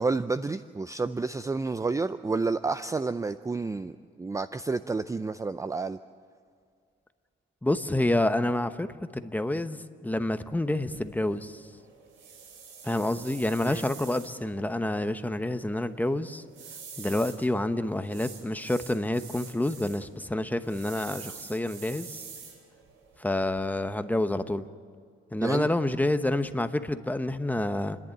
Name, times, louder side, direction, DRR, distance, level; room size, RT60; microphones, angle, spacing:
voice 1, 0.0-6.0 13.6-13.9 25.4-25.7, right 3 dB, 15° right, 13 dB, 0.5 m, -30 dB
voice 2, 7.6-8.9 9.1-11.6 12.8-16.4 17.0-22.2 23.2-24.6 25.3-28.0, left 1 dB, 10° left, 10 dB, 1.0 m, -28 dB
sound 1, 10.9-23.9, right 6 dB, 90° right, 3.4 m, -47 dB
29.5 x 11.0 x 8.9 m, 2.2 s
cardioid pair, 90°, 20 cm